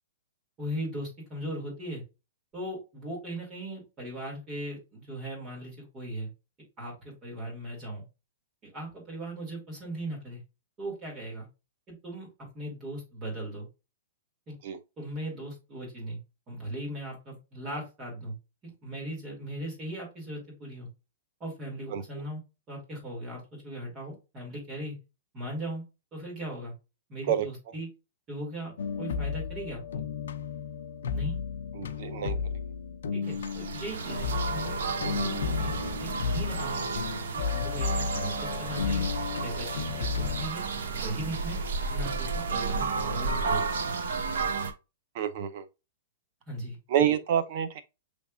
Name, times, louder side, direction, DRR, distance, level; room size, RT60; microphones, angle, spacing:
voice 1, 0.6-2.0 2.5-6.3 6.8-8.0 8.6-10.4 10.8-11.5 11.9-13.7 14.5-14.6 15.0-16.2 16.5-18.3 18.6-20.9 21.4-22.4 22.7-25.0 25.3-25.8 26.1-26.7 27.1-27.9 28.3-30.1 31.1-31.4 33.1-35.8 36.0-36.8 37.5-39.0 39.4-40.6 40.9-41.6 41.9-43.7 46.5-46.8, right 1 dB, 15° right, 2.5 m, -38 dB
voice 2, 21.9-22.2 27.3-27.5 31.8-32.4 45.1-45.7 46.9-47.8, right 9 dB, 40° right, 0.6 m, -28 dB
sound 1, 28.8-40.5, left 6 dB, 80° left, 0.6 m, -33 dB
sound 2, 33.3-44.7, right 4 dB, 70° right, 0.9 m, -32 dB
6.2 x 3.5 x 2.4 m
hypercardioid pair, 175°, 0 cm